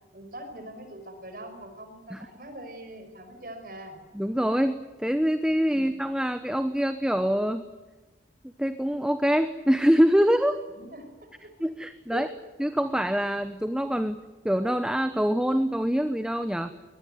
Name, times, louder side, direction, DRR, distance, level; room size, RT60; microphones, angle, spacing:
voice 1, 0.1-4.0 5.7-6.0 10.8-11.5 12.1-12.3, right 1 dB, 50° right, 7 dB, 5.6 m, -42 dB
voice 2, 4.1-7.7 8.6-10.6 11.6-12.3 12.6-16.7, equal, 5° right, 10 dB, 0.9 m, -25 dB
23.0 x 20.0 x 9.4 m, 1.2 s
head